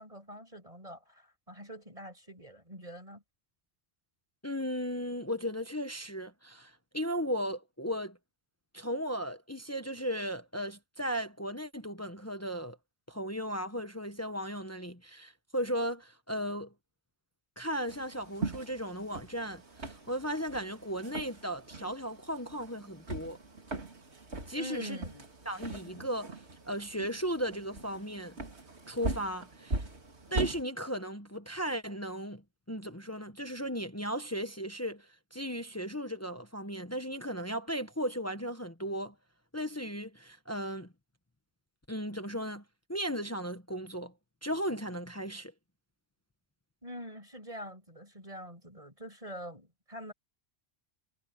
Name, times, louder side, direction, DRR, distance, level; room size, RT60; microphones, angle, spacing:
voice 1, 0.0-3.2 24.6-25.3 46.8-50.1, equal, 35° right, 7.1 m, -44 dB
voice 2, 4.4-8.2 8.7-12.8 13.1-16.7 17.6-23.4 24.5-25.0 25.4-26.3 26.7-28.3 28.9-29.8 30.3-32.4 32.7-39.1 39.5-40.9 41.9-42.6 42.9-44.1 44.4-45.5, equal, 15° left, 1.1 m, -36 dB
sound 1, 17.9-30.6, right 2 dB, 85° right, 3.0 m, -40 dB
omnidirectional pair, 1.1 m